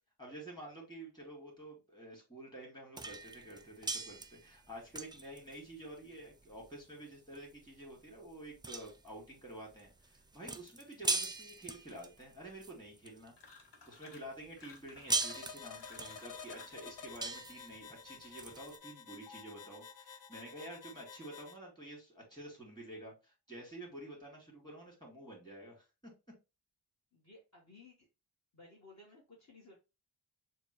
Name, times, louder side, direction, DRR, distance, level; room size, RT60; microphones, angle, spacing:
voice 1, 0.2-13.6 13.9-25.8, right 1 dB, 10° left, -1 dB, 2.2 m, -50 dB
sound 1, 3.0-13.5 14.0-18.8, right 3 dB, 10° right, 0.4 m, -41 dB
sound 2, 13.4-14.3 14.6-16.8, left 4 dB, 70° left, 1.2 m, -57 dB
sound 3, 15.1-21.6, left 6 dB, 85° left, 0.7 m, -51 dB
voice 2, 27.1-28.1 28.5-29.8, left 2 dB, 40° left, -2 dB, 1.3 m, -58 dB
6.8 x 2.3 x 3.0 m, 0.27 s
wide cardioid pair, 115°, 43 cm